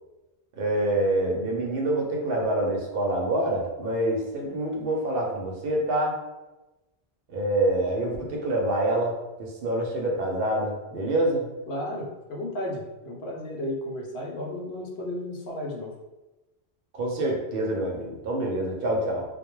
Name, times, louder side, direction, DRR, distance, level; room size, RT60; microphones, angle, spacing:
voice 1, 0.6-6.2 7.3-9.1 9.4-11.5 16.9-19.3, right 1 dB, 60° right, -1 dB, 0.7 m, -26 dB
voice 2, 11.7-15.9, left 1 dB, 70° left, -1 dB, 0.8 m, -33 dB
2.2 x 2.1 x 3.0 m, 1.1 s
omnidirectional pair, 1.1 m